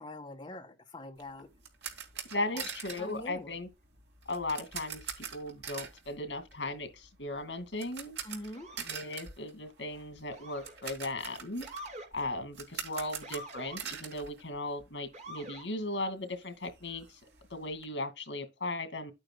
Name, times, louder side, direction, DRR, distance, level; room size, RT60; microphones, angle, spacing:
voice 1, 0.0-1.5 2.3-2.7 3.0-3.5 8.2-8.7, left 1 dB, 25° left, 1.9 m, -43 dB
sound 1, 1.2-15.1 15.4-15.5 16.0-16.1 16.3-17.8, right 7 dB, 70° right, 2.6 m, -44 dB
voice 2, 2.3-3.7 4.3-8.1 8.9-11.7 12.1-17.0 17.5-19.1, left 2 dB, 80° left, 2.4 m, -37 dB
Motor vehicle (road) / Siren, 8.5-8.9 10.3-10.9 11.6-12.1 13.2-13.8 15.1-15.7, right 1 dB, 40° right, 3.3 m, -46 dB
11.5 x 8.9 x 2.3 m
head